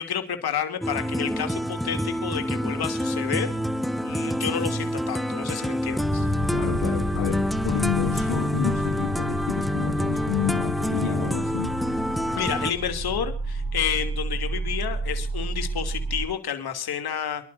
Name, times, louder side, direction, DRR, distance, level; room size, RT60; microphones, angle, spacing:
voice 1, 0.0-3.5 4.0-6.3 12.3-17.5, left 8 dB, 50° left, 3.0 m, -30 dB
sound 1, 0.8-12.7, equal, ahead, 0.8 m, -27 dB
sound 2, 5.8-16.3, right 2 dB, 35° right, 6.2 m, -32 dB
voice 2, 6.5-11.8, left 13 dB, 85° left, 2.2 m, -30 dB
29.0 x 11.5 x 2.7 m
supercardioid pair, 85°, 48 cm